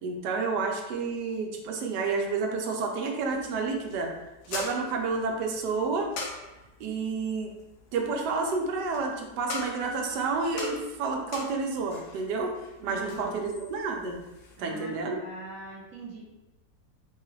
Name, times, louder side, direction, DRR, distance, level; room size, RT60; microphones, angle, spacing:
voice 1, 0.0-4.1 4.5-6.1 6.8-7.5 7.9-12.5 12.8-14.2 14.6-15.2, right 4 dB, 90° right, 2 dB, 1.2 m, -30 dB
sound 1, 3.3-14.6, left 3 dB, 80° left, 1.2 m, -43 dB
voice 2, 12.8-13.4 14.6-16.2, right 2 dB, 60° right, -3 dB, 0.9 m, -42 dB
3.7 x 2.3 x 3.1 m, 1.0 s
omnidirectional pair, 1.7 m